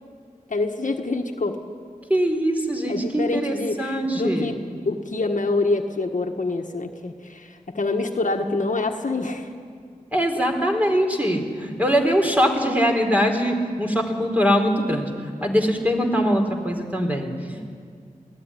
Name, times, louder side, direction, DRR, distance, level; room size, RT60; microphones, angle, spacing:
voice 1, 0.5-1.6 2.9-4.6 4.8-9.5, left 3 dB, 65° left, 4 dB, 1.6 m, -26 dB
voice 2, 2.1-4.5 10.1-15.1 15.4-17.7, equal, 10° right, 2 dB, 4.0 m, -22 dB
21.5 x 15.5 x 10.0 m, 2.1 s
cardioid pair, 45°, 14 cm